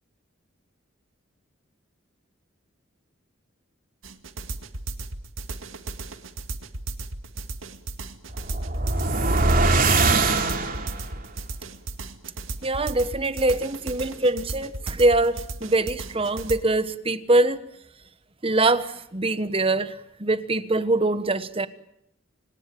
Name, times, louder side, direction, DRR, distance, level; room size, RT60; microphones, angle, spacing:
sound 1, 4.0-16.6, right 2 dB, 85° right, 2.0 m, -35 dB
sound 2, 8.3-11.1, right 3 dB, 45° right, 3.2 m, -22 dB
voice 1, 12.6-17.6 18.4-21.7, right 2 dB, 30° right, 13 dB, 1.3 m, -23 dB
28.5 x 18.5 x 9.2 m, 0.74 s
head